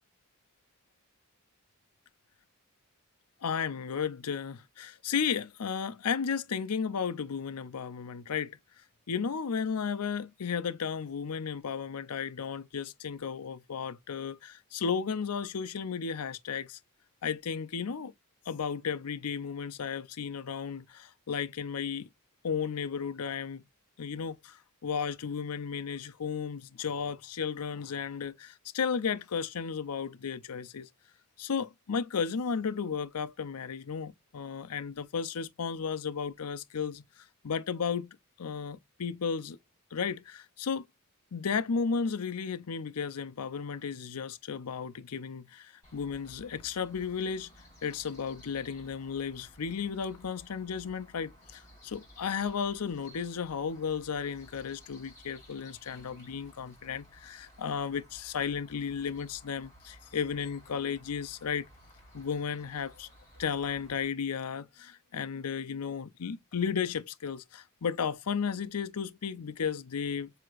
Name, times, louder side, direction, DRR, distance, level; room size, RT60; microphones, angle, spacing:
voice 1, 3.4-8.6 9.1-16.8 17.2-18.1 18.5-22.1 22.4-23.6 24.0-30.9 31.4-37.0 37.4-38.1 38.4-39.6 39.9-40.9 41.3-47.5 47.8-61.6 62.1-63.1 63.4-70.3, left 6 dB, 90° left, 0.6 m, -34 dB
sound 1, 45.8-64.1, equal, 15° left, 3.9 m, -56 dB
7.6 x 2.9 x 2.4 m
head